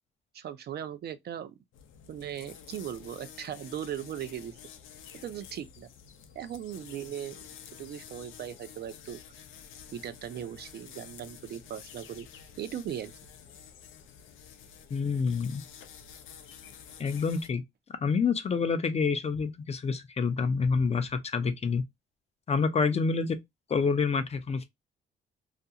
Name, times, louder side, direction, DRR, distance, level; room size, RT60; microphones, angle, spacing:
voice 1, 0.3-1.5 2.1-4.5 5.2-5.9 6.3-7.4 7.8-9.4 9.9-12.3 12.6-13.1, right 10 dB, 55° right, 0.4 m, -38 dB
sound 1, 1.7-17.5, left 8 dB, 85° left, 0.5 m, -50 dB
voice 2, 14.9-15.6 17.0-17.6 18.0-21.8 22.5-23.4 23.7-24.6, left 5 dB, 30° left, 0.4 m, -27 dB
2.4 x 2.2 x 2.7 m
cardioid pair, 90°, 20 cm